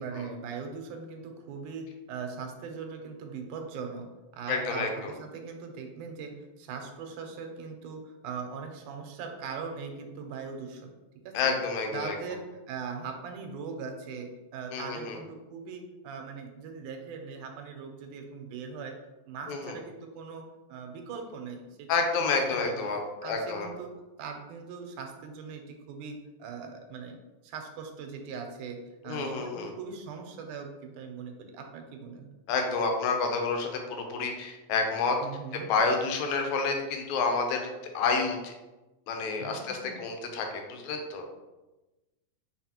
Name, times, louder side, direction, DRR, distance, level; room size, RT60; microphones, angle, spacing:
voice 1, 0.0-4.1 4.3-10.9 11.3-11.4 11.9-12.4 12.7-19.0 19.3-22.8 23.2-23.9 24.2-27.2 27.4-32.3 35.2-35.7 39.4-40.0, right 5 dB, 90° right, 4 dB, 2.1 m, -40 dB
voice 2, 4.5-5.1 11.3-12.2 14.7-15.2 19.5-19.8 21.9-23.7 29.1-29.7 32.5-33.7 34.1-35.2 35.7-37.7 37.9-38.5 39.1-41.2, left 4 dB, 75° left, 3 dB, 1.9 m, -29 dB
4.6 x 4.0 x 2.8 m, 1.1 s
omnidirectional pair, 3.5 m